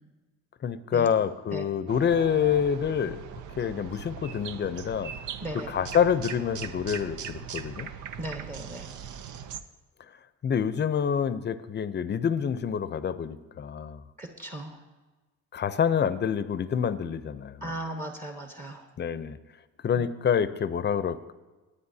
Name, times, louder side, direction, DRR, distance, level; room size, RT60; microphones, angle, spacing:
voice 1, 0.6-3.2 3.6-5.1 5.5-7.9 10.4-14.0 15.5-17.7 19.0-19.4 19.8-21.3, left 7 dB, 35° left, 13 dB, 0.6 m, -27 dB
sound 1, 1.9-9.6, right 8 dB, 80° right, 0.7 m, -40 dB
voice 2, 8.2-8.9 14.2-14.8 17.6-18.8, right 1 dB, 25° right, 3 dB, 1.3 m, -37 dB
18.5 x 9.6 x 2.8 m, 1.2 s
cardioid pair, 85°, 30 cm